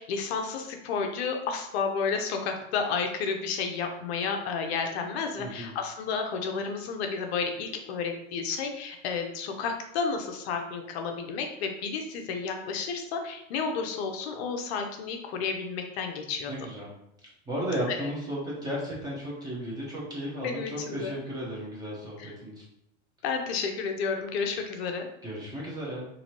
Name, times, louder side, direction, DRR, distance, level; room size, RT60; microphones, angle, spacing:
voice 1, 0.0-16.5 17.9-18.1 20.4-21.1 22.2-22.3 23.2-25.1, left 5 dB, 55° left, 4 dB, 0.5 m, -31 dB
voice 2, 5.4-5.7 16.5-16.9 17.5-22.6 25.2-26.1, equal, 10° right, -5 dB, 0.5 m, -34 dB
2.9 x 2.6 x 2.8 m, 0.82 s
supercardioid pair, 145°, 39 cm